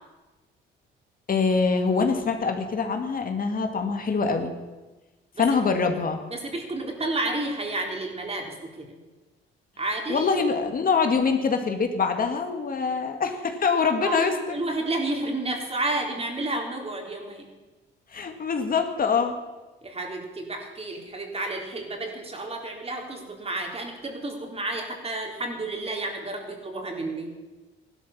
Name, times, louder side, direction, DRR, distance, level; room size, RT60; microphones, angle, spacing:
voice 1, 1.3-4.5 5.4-6.2 10.1-14.4 18.1-19.3, left 5 dB, 45° left, 5 dB, 2.0 m, -24 dB
voice 2, 6.2-9.0 9.8-10.3 14.0-17.5 19.8-27.3, right 2 dB, 30° right, 1 dB, 3.9 m, -31 dB
15.5 x 12.0 x 7.3 m, 1.1 s
cardioid pair, 90°, 20 cm